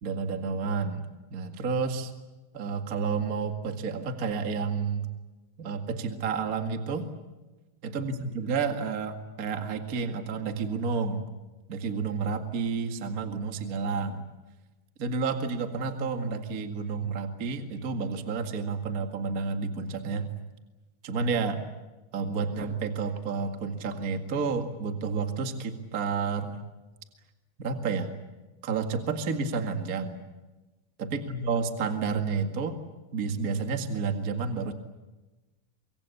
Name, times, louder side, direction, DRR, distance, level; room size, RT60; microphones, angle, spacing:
voice 1, 0.0-1.0 1.3-2.1 2.5-5.1 5.6-7.1 7.8-11.3 11.7-14.2 15.0-20.3 21.0-21.6 22.1-26.6 27.6-28.1 28.6-30.2 31.1-32.8 33.1-34.7, right 5 dB, 35° right, 6 dB, 1.4 m, -30 dB
24.5 x 23.5 x 8.4 m, 1.1 s
omnidirectional pair, 4.5 m